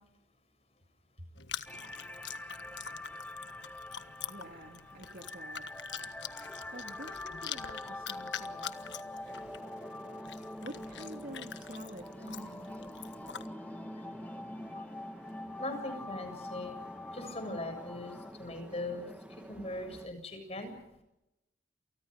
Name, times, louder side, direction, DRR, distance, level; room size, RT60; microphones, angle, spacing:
Chewing mastication, 1.4-13.5, left 9 dB, 85° left, 1.5 m, -45 dB
sound 1, 1.7-18.3, left 1 dB, 10° left, 1.1 m, -45 dB
voice 1, 4.3-5.7 6.7-8.8 10.6-12.9, right 1 dB, 55° right, 3 dB, 2.6 m, -48 dB
sound 2, 9.2-20.1, equal, 5° right, 2.2 m, -50 dB
voice 2, 15.6-16.7 17.1-18.1 18.4-19.1 19.5-20.7, left 2 dB, 35° left, 7 dB, 7.6 m, -39 dB
29.5 x 28.5 x 5.2 m, 0.90 s
head